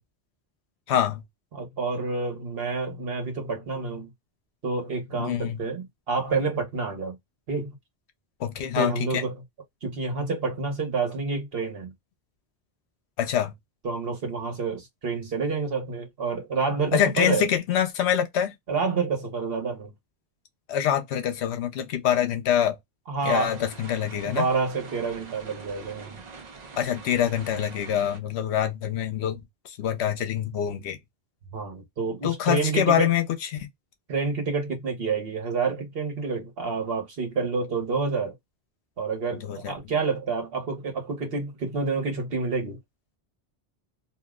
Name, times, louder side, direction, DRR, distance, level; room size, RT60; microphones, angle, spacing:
voice 1, 0.9-1.2 5.2-5.6 8.4-9.2 13.2-13.5 16.9-18.5 20.7-22.8 23.2-24.5 26.8-31.0 32.2-33.3 33.5-33.7 39.4-39.7, left 9 dB, 85° left, 0.9 m, -25 dB
voice 2, 1.5-4.1 4.6-7.2 7.5-7.7 8.8-9.4 9.8-11.9 13.8-17.4 18.7-19.9 23.1-23.6 24.2-26.2 31.5-33.1 34.1-38.3 39.0-42.8, right 4 dB, 65° right, 1.2 m, -28 dB
sound 1, 23.2-28.2, right 4 dB, 50° right, 0.6 m, -44 dB
2.6 x 2.1 x 3.5 m
omnidirectional pair, 1.1 m